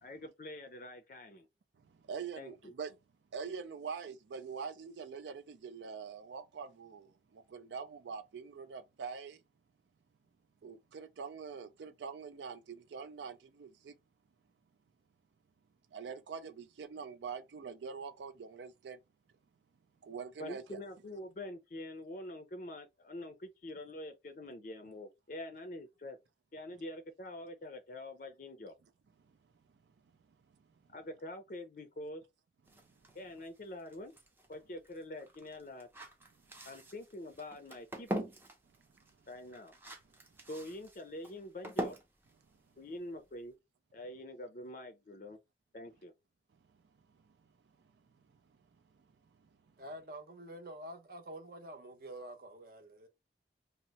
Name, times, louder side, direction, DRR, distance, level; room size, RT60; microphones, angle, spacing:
voice 1, 0.0-1.5 2.4-2.7 20.4-26.2 26.5-28.8 30.9-32.2 33.1-34.1 34.5-35.9 36.6-38.3 39.3-39.7 40.5-42.0 42.8-43.5 43.9-45.4 45.7-46.1, left 1 dB, 50° left, 0.4 m, -45 dB
voice 2, 1.9-2.9 3.3-9.4 10.6-13.9 15.9-19.0 20.0-20.6, right 6 dB, 90° right, 0.4 m, -44 dB
sound 1, 32.6-43.5, equal, 10° right, 0.5 m, -45 dB
voice 3, 49.8-53.1, right 1 dB, 55° right, 0.7 m, -47 dB
2.7 x 2.0 x 4.0 m
head